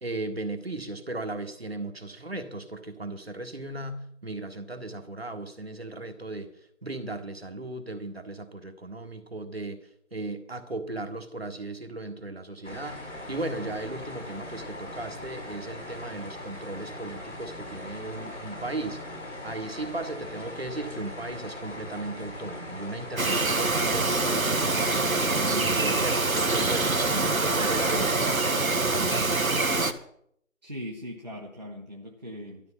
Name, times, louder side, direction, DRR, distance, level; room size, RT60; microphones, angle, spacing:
voice 1, 0.0-6.5 6.8-19.0 19.4-29.6, right 2 dB, 50° right, 7 dB, 1.7 m, -36 dB
sound 1, 12.6-28.1, left 1 dB, 60° left, 4.8 m, -40 dB
Bird vocalization bird call bird song, 23.2-29.9, right 3 dB, 80° right, 1.5 m, -25 dB
voice 2, 30.6-32.6, equal, 30° right, -1 dB, 1.0 m, -39 dB
13.5 x 12.5 x 5.6 m, 0.71 s
figure-of-eight pair, 175°, 41 cm